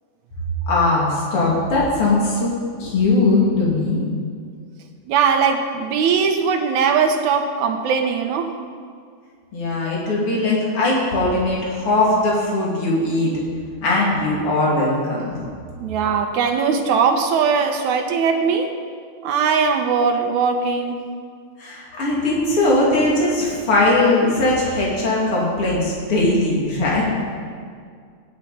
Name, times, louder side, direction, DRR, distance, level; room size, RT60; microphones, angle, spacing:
voice 1, 0.7-2.5 2.8-4.0 9.5-13.3 13.8-15.4 21.6-27.0, left 2 dB, 45° left, -5 dB, 3.5 m, -19 dB
voice 2, 5.1-8.5 15.8-18.7 19.2-21.0, right 6 dB, 75° right, 4 dB, 2.3 m, -20 dB
17.0 x 10.5 x 4.3 m, 2.1 s
omnidirectional pair, 3.5 m